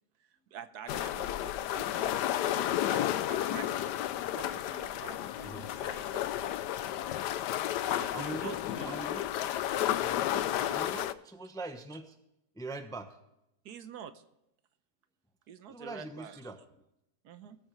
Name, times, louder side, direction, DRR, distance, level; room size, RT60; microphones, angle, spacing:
voice 1, 0.2-3.9 4.3-6.5 7.9-9.0 13.6-14.2 15.5-16.4 17.2-17.6, right 8 dB, 75° right, 11 dB, 1.3 m, -48 dB
sound 1, 0.9-11.1, left 12 dB, 80° left, 1.2 m, -32 dB
voice 2, 8.1-8.6 8.8-9.3 10.0-12.2 12.5-13.2 15.7-16.6, right 2 dB, 5° left, 7 dB, 0.7 m, -42 dB
19.5 x 8.7 x 3.1 m, 0.84 s
omnidirectional pair, 1.8 m